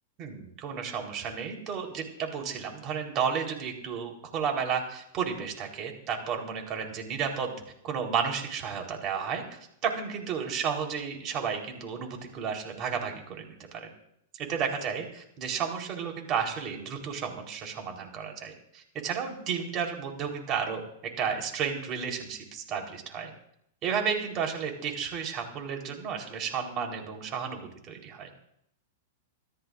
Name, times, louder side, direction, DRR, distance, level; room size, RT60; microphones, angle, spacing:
voice 1, 0.2-7.5 7.8-13.9 14.4-20.8 21.2-23.3 23.8-28.3, right 7 dB, 35° right, 2 dB, 4.0 m, -32 dB
27.5 x 13.0 x 2.6 m, 0.71 s
hypercardioid pair, 125°, 0 cm